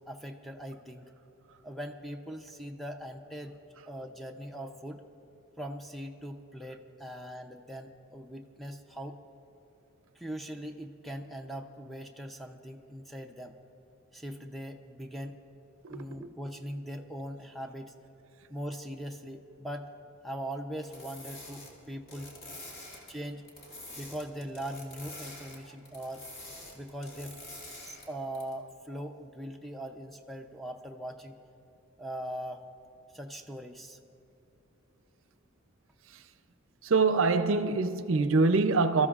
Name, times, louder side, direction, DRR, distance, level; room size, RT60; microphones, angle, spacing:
voice 1, 0.1-1.1 1.6-3.6 3.9-5.0 5.6-9.2 10.2-13.6 14.1-15.4 15.9-17.9 18.5-19.9 20.2-22.3 23.1-23.4 24.0-26.3 26.7-27.4 27.8-31.4 32.0-32.6 33.1-34.0, equal, ahead, 0.6 m, -40 dB
voice 2, 15.8-16.2 36.1-36.2 36.8-39.1, right 3 dB, 70° right, 0.6 m, -25 dB
sound 1, 20.8-23.1 23.4-25.6 25.8-28.1 28.3-28.5, left 1 dB, 50° left, 2.3 m, -46 dB
27.0 x 13.5 x 2.4 m
head